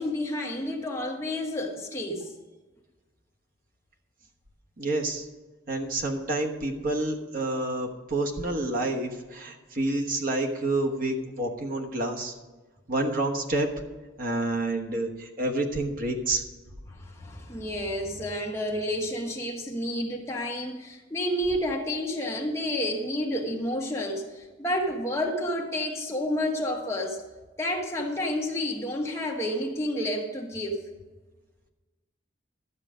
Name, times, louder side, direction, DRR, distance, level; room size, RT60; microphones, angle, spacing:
voice 1, 0.0-2.3 16.9-27.2 27.6-30.8, left 1 dB, 15° left, 0 dB, 1.2 m, -30 dB
voice 2, 4.8-5.3 5.7-12.3 12.9-13.7 14.2-16.4, right 2 dB, 45° right, 2 dB, 1.1 m, -28 dB
12.5 x 8.2 x 5.0 m, 1.3 s
head